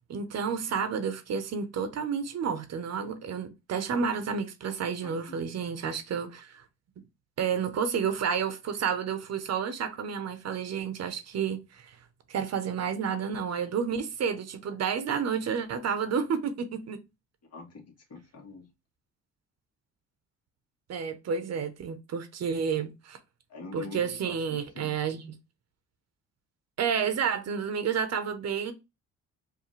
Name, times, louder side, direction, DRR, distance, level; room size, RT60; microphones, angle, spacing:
voice 1, 0.1-6.6 7.4-12.0 12.3-17.0 20.9-23.2 23.7-25.3 26.8-28.7, right 6 dB, 60° right, 0.9 m, -30 dB
voice 2, 5.0-5.4 17.4-18.7 23.5-25.0, left 3 dB, 55° left, 1.7 m, -45 dB
4.8 x 2.7 x 3.2 m
cardioid pair, 90°, 30 cm